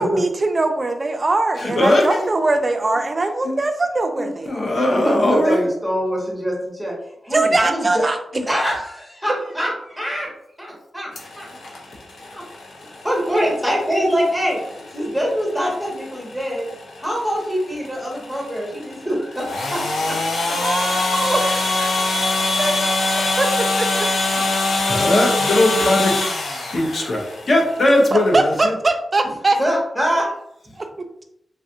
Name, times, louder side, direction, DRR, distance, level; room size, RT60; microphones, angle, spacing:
voice 1, 0.0-4.7 7.3-8.2 8.5-8.7 20.6-22.1 22.4-24.1 28.1-29.6 30.8-31.2, right 2 dB, 25° right, 6 dB, 0.3 m, -22 dB
voice 2, 1.6-2.3 3.4-3.6 4.2-5.7 8.3-8.4 23.0-23.3 24.8-26.2 26.7-28.7, left 1 dB, 45° left, 0 dB, 0.7 m, -19 dB
voice 3, 4.9-6.9 7.2-8.0 8.5-10.3 10.6-11.1 11.4-11.5 12.3-12.4 13.0-14.6 14.9-16.7 17.0-19.8 20.1-20.2 20.5-20.6 29.6-30.3 30.7-30.8, equal, 5° left, -3 dB, 0.9 m, -23 dB
sound 1, 11.2-28.6, left 2 dB, 90° left, 0.6 m, -24 dB
3.3 x 2.4 x 2.7 m, 0.76 s
wide cardioid pair, 165°, 0 cm